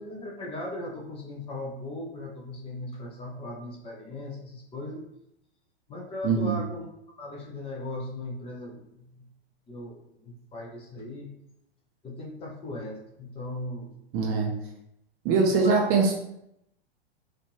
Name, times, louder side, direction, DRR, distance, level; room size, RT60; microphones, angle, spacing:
voice 1, 0.0-5.1 5.9-6.9 7.2-9.3 9.7-11.3 12.0-14.0 15.5-15.8, left 1 dB, 20° left, -1 dB, 0.7 m, -38 dB
voice 2, 6.2-6.6 14.1-14.5 15.2-16.1, right 4 dB, 30° right, 0 dB, 0.6 m, -22 dB
4.4 x 2.6 x 3.1 m, 0.79 s
figure-of-eight pair, 95°, 31 cm